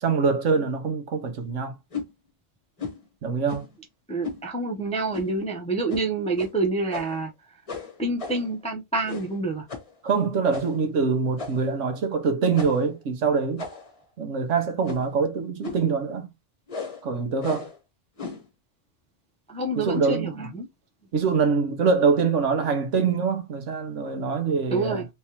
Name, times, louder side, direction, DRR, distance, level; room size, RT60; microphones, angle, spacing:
voice 1, 0.0-1.7 3.2-3.7 10.0-13.6 14.2-16.3 17.0-17.7 19.8-20.5 21.1-25.0, right 5 dB, 70° right, 1.2 m, -24 dB
sound 1, 1.9-2.1 2.8-3.0 3.5-3.8 4.2-4.4 5.1-5.4 5.9-6.1 6.4-6.5 6.9-7.3 7.7-8.5 9.0-9.4 9.7-9.9 10.5-10.8 11.4-11.8 12.5-12.9 13.6-14.0 14.8-15.2 15.6-15.9 16.7-17.0 17.4-17.8 18.2-18.5, left 4 dB, 30° left, 1.0 m, -36 dB
voice 2, 4.1-7.3 8.0-9.7 19.5-20.7 24.7-25.1, right 3 dB, 10° left, 0.4 m, -27 dB
3.5 x 3.3 x 2.8 m
omnidirectional pair, 1.3 m